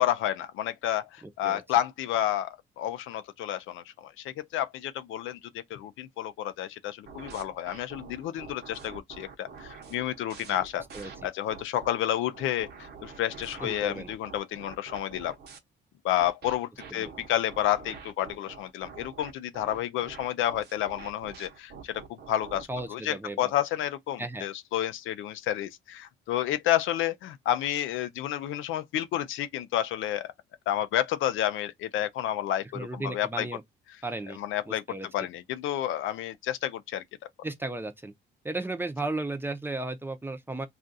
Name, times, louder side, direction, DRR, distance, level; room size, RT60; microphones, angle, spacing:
voice 1, 0.0-5.4 5.7-10.8 11.2-15.4 16.0-30.3 30.7-33.5 34.3-34.8 35.1-37.0, left 12 dB, 80° left, 0.4 m, -30 dB
voice 2, 1.2-1.6 10.9-11.3 13.6-14.1 16.9-17.1 22.7-23.5 24.2-24.4 32.7-33.6 34.0-34.4 34.7-35.1 37.4-38.1 38.4-40.7, right 2 dB, 10° right, 0.6 m, -35 dB
sound 1, 7.1-11.9 12.3-15.6 16.2-22.9, right 5 dB, 55° right, 0.9 m, -46 dB
2.5 x 2.3 x 3.9 m
cardioid pair, 90°, 20 cm